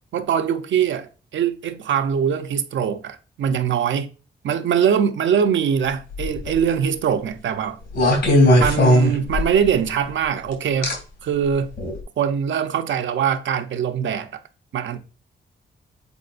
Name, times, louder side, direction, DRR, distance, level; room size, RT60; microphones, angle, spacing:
voice 1, 0.1-4.1 4.4-7.8 8.6-10.9 11.2-11.7 12.2-14.4 14.7-15.0, right 8 dB, 85° right, 0.8 m, -22 dB
sound 1, 6.1-6.6 7.9-9.7 10.8-10.9 11.8-12.0, left 1 dB, 75° left, 2.9 m, -17 dB
8.0 x 4.9 x 2.6 m
wide cardioid pair, 155°, 19 cm